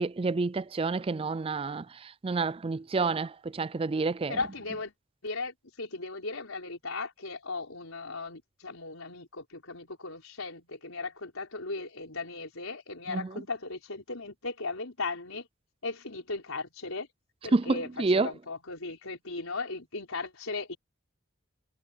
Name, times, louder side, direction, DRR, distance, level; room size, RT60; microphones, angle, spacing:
voice 1, 0.0-4.4 13.1-13.4 17.5-18.3, right 3 dB, 25° right, 0.4 m, -29 dB
voice 2, 4.3-4.9 5.2-15.5 15.8-17.1 17.4-17.9 18.1-20.8, left 3 dB, 85° left, 4.4 m, -37 dB
head